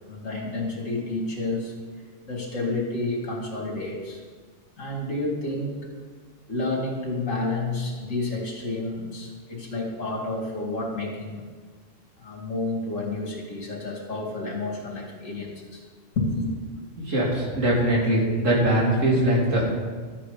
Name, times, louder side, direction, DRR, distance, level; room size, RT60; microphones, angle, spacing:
voice 1, 0.1-4.2 4.8-5.8 6.5-11.5 12.2-15.9 16.2-16.5, left 2 dB, 80° left, -1 dB, 2.8 m, -30 dB
voice 2, 17.0-19.7, right 1 dB, 75° right, -3 dB, 3.1 m, -22 dB
13.0 x 8.8 x 5.1 m, 1.5 s
omnidirectional pair, 1.3 m